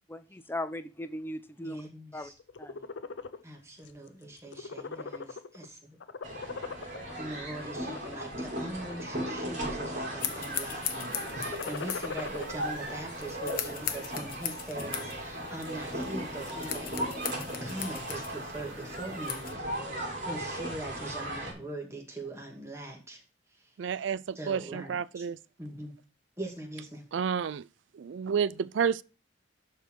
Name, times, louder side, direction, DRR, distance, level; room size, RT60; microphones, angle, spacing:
voice 1, 0.1-1.8 2.1-2.3 2.6-2.8, left 1 dB, 10° left, 0.6 m, -38 dB
voice 2, 1.6-2.3 3.4-6.0 7.2-16.9 17.6-23.2 23.6-23.7 24.4-25.3 25.6-25.9 26.4-27.0, right 1 dB, 15° right, 2.2 m, -42 dB
sound 1, 2.4-3.4 3.9-4.1 4.4-5.7 6.0-7.1 7.8-8.2 8.8-9.6 9.9-10.4 11.2-12.5, left 4 dB, 75° left, 0.7 m, -40 dB
sound 2, 6.2-21.5, right 1 dB, 45° right, 4.3 m, -37 dB
sound 3, 10.2-19.5, left 10 dB, 50° left, 1.0 m, -40 dB
voice 3, 23.8-25.4 27.1-27.7 27.9-29.0, right 7 dB, 75° right, 0.4 m, -30 dB
12.0 x 4.5 x 4.5 m
head